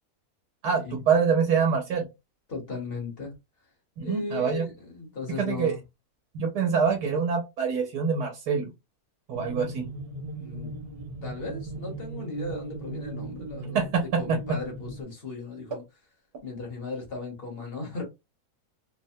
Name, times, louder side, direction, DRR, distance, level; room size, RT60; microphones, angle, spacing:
voice 1, 0.6-2.0 4.0-4.7 5.4-5.7 6.3-8.7 9.3-9.9 13.7-14.6, right 6 dB, 90° right, 1.2 m, -25 dB
voice 2, 2.5-3.3 4.0-5.8 10.3-10.7 11.2-13.9 14.2-15.8 16.4-18.0, left 3 dB, 45° left, 1.1 m, -36 dB
sound 1, 9.3-15.0, right 2 dB, 40° right, 0.5 m, -38 dB
3.2 x 2.1 x 2.7 m
omnidirectional pair, 1.6 m